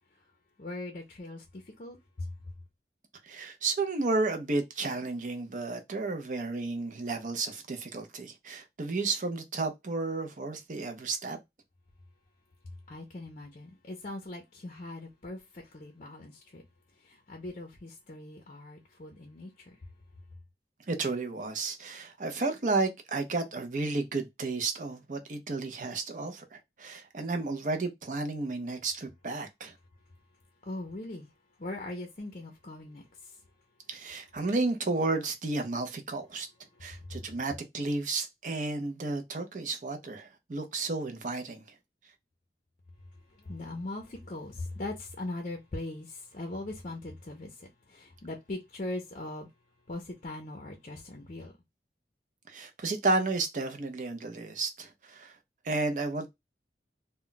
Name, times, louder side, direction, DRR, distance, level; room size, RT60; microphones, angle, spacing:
voice 1, 0.6-2.3 12.9-16.6 17.0-19.8 30.6-31.3 31.6-33.4 36.7-37.3 43.3-49.5 49.9-51.5, left 2 dB, 40° left, 0.5 m, -40 dB
voice 2, 3.2-11.4 20.9-29.7 33.9-36.5 36.8-41.6 52.5-55.4 55.6-56.3, right 3 dB, 45° right, 0.5 m, -32 dB
2.2 x 2.2 x 3.8 m
head